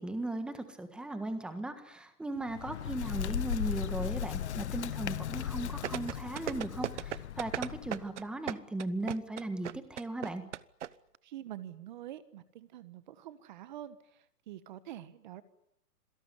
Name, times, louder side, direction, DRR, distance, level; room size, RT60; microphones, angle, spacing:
voice 1, 0.0-10.4, right 2 dB, ahead, 9 dB, 1.4 m, -37 dB
Bird, 2.4-8.1, left 10 dB, 45° left, 0.9 m, -37 dB
sound 1, 5.8-10.9 11.1-11.2, right 10 dB, 45° right, 0.9 m, -36 dB
voice 2, 11.2-15.4, right 12 dB, 30° right, 14 dB, 1.4 m, -46 dB
27.0 x 17.5 x 9.9 m, 0.77 s
hypercardioid pair, 160°, 48 cm